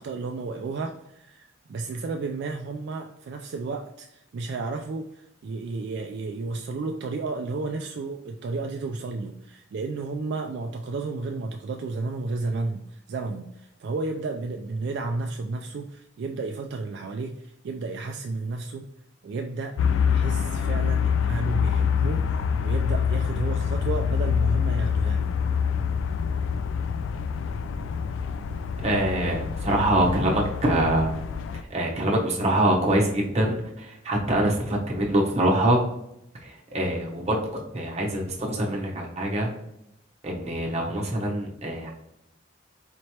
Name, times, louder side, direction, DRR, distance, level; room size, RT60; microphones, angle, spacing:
voice 1, 0.0-18.9 19.2-19.8 20.1-25.3, right 3 dB, 60° right, 3 dB, 0.3 m, -32 dB
sound 1, 19.8-31.6, left 7 dB, 90° left, 0.3 m, -26 dB
voice 2, 28.8-31.2 31.5-35.8 36.4-37.5 37.7-39.5 40.2-41.9, right 1 dB, 35° right, -2 dB, 0.9 m, -24 dB
4.3 x 3.1 x 2.8 m, 0.83 s
head